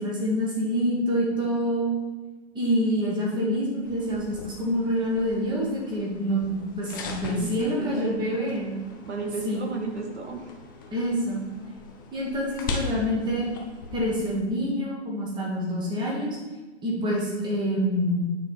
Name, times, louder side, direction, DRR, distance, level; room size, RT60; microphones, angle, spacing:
voice 1, 0.0-1.9 2.5-8.8 9.4-9.6 10.9-11.4 12.1-13.5 13.9-16.4 16.8-18.3, equal, 15° right, -4 dB, 1.5 m, -26 dB
sound 1, 3.8-14.4, left 3 dB, 20° left, 0.4 m, -40 dB
voice 2, 7.3-8.3 9.0-10.4, right 5 dB, 75° right, 3 dB, 1.1 m, -34 dB
8.8 x 4.2 x 3.5 m, 1.2 s
figure-of-eight pair, 125°, 35 cm